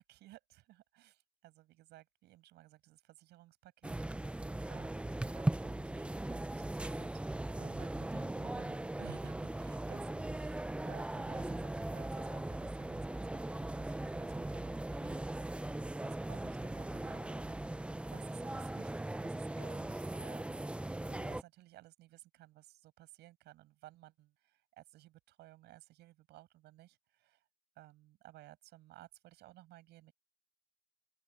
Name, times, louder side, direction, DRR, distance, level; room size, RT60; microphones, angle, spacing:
voice 1, 0.0-15.6 16.0-17.6 18.0-20.6 21.1-27.4 27.8-30.1, right 16 dB, 80° right, 7.8 m, -58 dB
sound 1, 3.8-21.4, right 1 dB, 5° right, 0.7 m, -39 dB
open air
cardioid pair, 110°, 17 cm